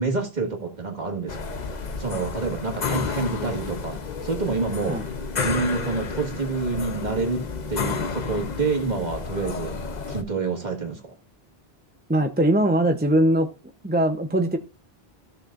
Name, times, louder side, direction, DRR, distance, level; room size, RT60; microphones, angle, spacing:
voice 1, 0.0-1.6 2.0-5.0 5.4-9.8 10.1-11.2, right 4 dB, 45° right, 2.0 m, -28 dB
sound 1, 1.3-10.2, left 5 dB, 45° left, 0.9 m, -31 dB
voice 2, 12.1-13.5 13.8-14.6, right 1 dB, 10° right, 0.6 m, -21 dB
15.0 x 6.6 x 2.5 m
omnidirectional pair, 1.0 m